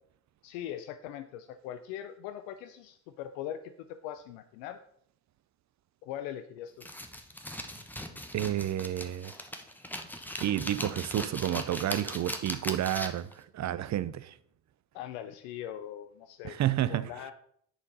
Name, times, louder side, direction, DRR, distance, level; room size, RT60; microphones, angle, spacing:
voice 1, 0.4-4.8 6.0-6.9 14.9-16.6 16.9-17.3, left 11 dB, 75° left, 0.6 m, -41 dB
sound 1, 6.8-13.3, equal, 5° left, 1.0 m, -39 dB
voice 2, 8.3-9.3 10.4-14.3 16.4-17.1, right 12 dB, 35° right, 0.5 m, -30 dB
10.0 x 4.4 x 4.0 m
hypercardioid pair, 55°, 49 cm